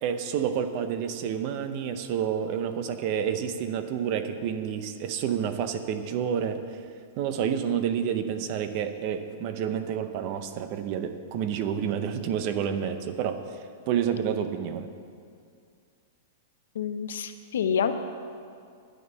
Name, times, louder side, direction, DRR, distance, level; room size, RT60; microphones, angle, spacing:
voice 1, 0.0-6.6 7.2-13.4 13.9-14.9, right 8 dB, 35° right, 9 dB, 0.7 m, -29 dB
voice 2, 16.7-17.9, left 7 dB, 90° left, 8 dB, 0.9 m, -27 dB
10.5 x 9.6 x 5.6 m, 2.3 s
supercardioid pair, 165°, 0 cm